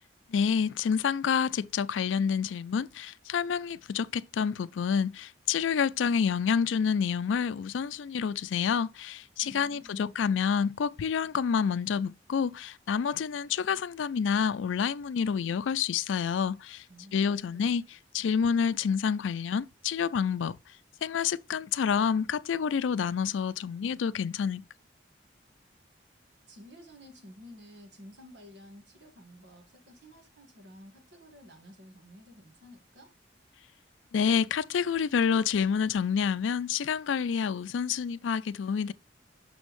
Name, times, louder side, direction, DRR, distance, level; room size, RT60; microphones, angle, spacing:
voice 1, 0.3-16.8 17.1-20.6 21.0-24.6 34.1-38.9, left 6 dB, 90° left, 0.4 m, -28 dB
voice 2, 9.4-10.2 16.9-17.7 26.5-33.1, equal, 70° right, 1.9 m, -52 dB
6.3 x 6.1 x 3.1 m
head